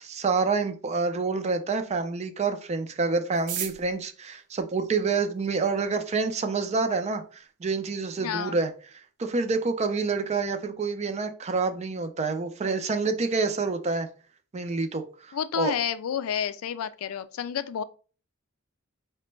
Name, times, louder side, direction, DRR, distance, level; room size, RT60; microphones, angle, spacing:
voice 1, 0.0-8.7 9.2-14.1 14.5-15.7, right 4 dB, 30° right, 0.4 m, -27 dB
sound 1, 3.3-5.6 6.4-6.5 6.7-6.8 7.0-7.5 7.8-7.9 8.1-8.5 8.9-9.1 9.4-9.7, right 10 dB, 85° right, 0.5 m, -38 dB
voice 2, 8.2-8.6 15.3-17.8, left 8 dB, 75° left, 0.3 m, -30 dB
4.9 x 2.2 x 3.1 m
head